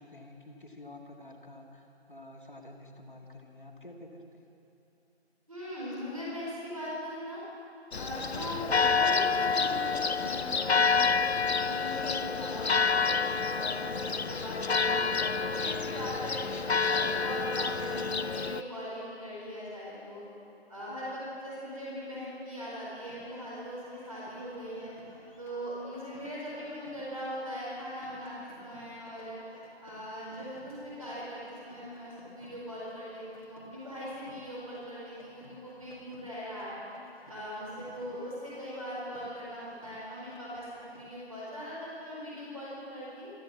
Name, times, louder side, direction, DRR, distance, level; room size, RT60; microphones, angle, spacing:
voice 1, 0.0-4.5, left 1 dB, 50° left, 2 dB, 1.9 m, -49 dB
voice 2, 5.5-7.4 7.9-20.2 20.7-24.9 25.4-36.8 37.3-43.3, equal, 30° right, -7 dB, 4.5 m, -40 dB
Church bell, 7.9-18.6, left 5 dB, 70° left, 0.6 m, -28 dB
sound 1, 23.0-41.0, equal, 30° left, 1.7 m, -56 dB
14.0 x 13.5 x 7.4 m, 2.9 s
figure-of-eight pair, 175°, 33 cm